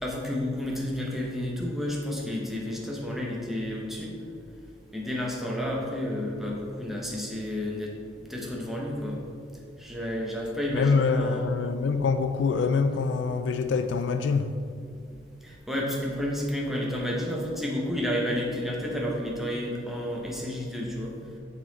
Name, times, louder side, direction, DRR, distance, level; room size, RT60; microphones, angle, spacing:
voice 1, 0.0-4.1 4.9-7.9 8.2-9.2 9.8-11.5 15.4-21.1, left 1 dB, ahead, 1.0 m, -31 dB
voice 2, 10.7-14.5, left 5 dB, 70° left, 0.3 m, -25 dB
7.5 x 4.0 x 4.0 m
head